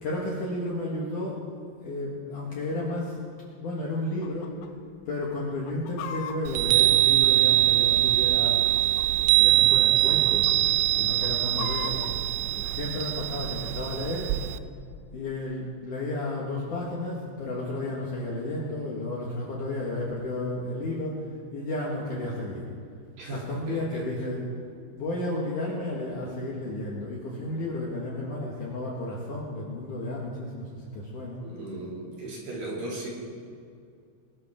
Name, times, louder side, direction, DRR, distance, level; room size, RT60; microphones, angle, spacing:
voice 1, 0.0-1.4 1.8-3.2 3.5-4.6 5.1-8.6 9.2-10.6 11.0-12.0 12.6-14.3 15.1-21.3 21.5-22.7 23.3-24.4 24.9-31.4, left 1 dB, 60° left, -4 dB, 2.4 m, -32 dB
Chicken rooster, 4.2-4.7 5.0-5.1 5.5-7.8 8.5-9.2 9.5-9.8 10.1-10.6 11.0-12.1, left 8 dB, 85° left, 3.3 m, -38 dB
Chime, 6.5-14.6, right 15 dB, 85° right, 2.5 m, -23 dB
voice 2, 23.2-24.0 31.4-33.1, right 2 dB, 55° right, -5 dB, 4.4 m, -37 dB
22.0 x 13.5 x 3.6 m, 2.3 s
omnidirectional pair, 5.4 m